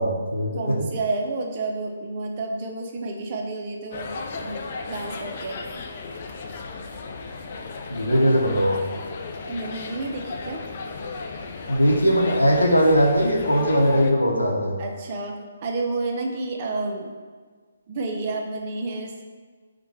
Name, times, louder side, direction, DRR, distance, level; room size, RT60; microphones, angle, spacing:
voice 1, 0.0-0.8 7.9-8.8 11.7-14.8, equal, 85° left, -1 dB, 0.7 m, -20 dB
voice 2, 0.5-5.6 9.5-10.6 14.8-17.1 17.9-19.2, right 3 dB, 35° right, 1 dB, 0.4 m, -30 dB
sound 1, 3.9-14.1, left 4 dB, 40° left, 0.3 m, -35 dB
4.4 x 2.2 x 3.0 m, 1.5 s
figure-of-eight pair, 135°, 0 cm